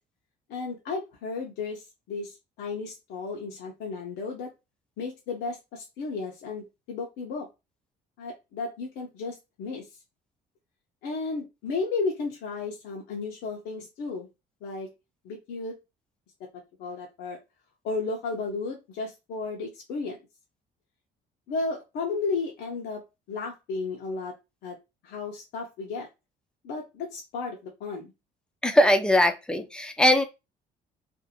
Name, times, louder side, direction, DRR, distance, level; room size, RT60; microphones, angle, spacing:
voice 1, 0.5-4.5 5.0-7.5 8.2-9.9 11.0-14.3 14.6-14.9 15.2-15.8 16.8-17.4 17.8-20.2 21.5-23.0 23.3-24.3 24.6-24.8 25.0-26.1 26.6-28.1, left 4 dB, 80° left, -1 dB, 0.7 m, -33 dB
voice 2, 28.6-30.2, left 1 dB, 5° left, 7 dB, 0.4 m, -21 dB
2.6 x 2.5 x 2.6 m, 0.25 s
cardioid pair, 110°, 17 cm